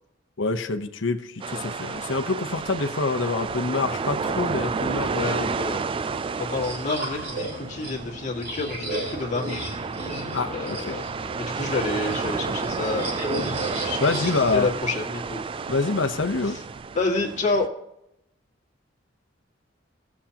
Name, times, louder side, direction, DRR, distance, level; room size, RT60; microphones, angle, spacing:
voice 1, 0.4-5.5 10.3-11.0 14.0-14.7 15.7-16.6, left 3 dB, 70° left, 6 dB, 0.9 m, -26 dB
sound 1, 1.4-17.7, right 5 dB, 30° right, 0.3 m, -31 dB
voice 2, 5.1-5.8 6.4-9.6 10.5-11.0 11.4-13.3 13.8-15.4 16.4-16.6 16.9-17.7, left 3 dB, 40° left, -1 dB, 2.0 m, -29 dB
sound 2, 6.4-14.9, right 1 dB, 55° right, 3.5 m, -34 dB
17.5 x 7.2 x 2.9 m, 0.82 s
head